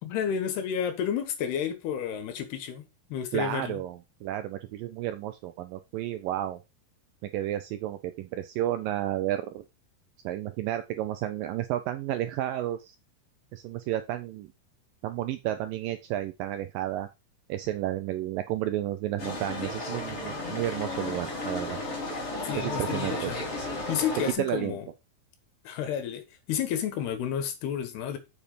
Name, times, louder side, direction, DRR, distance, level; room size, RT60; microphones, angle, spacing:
voice 1, 0.0-3.8 22.4-23.4 23.9-24.9 25.7-28.2, left 8 dB, 80° left, 3.5 m, -31 dB
voice 2, 3.3-6.6 7.2-9.6 10.2-13.0 13.5-14.5 15.0-17.1 17.5-21.8 22.6-23.3 24.4-24.8, right 13 dB, 80° right, 2.0 m, -32 dB
sound 1, 19.2-24.3, left 2 dB, 35° left, 3.7 m, -34 dB
7.1 x 6.9 x 5.1 m
omnidirectional pair, 4.6 m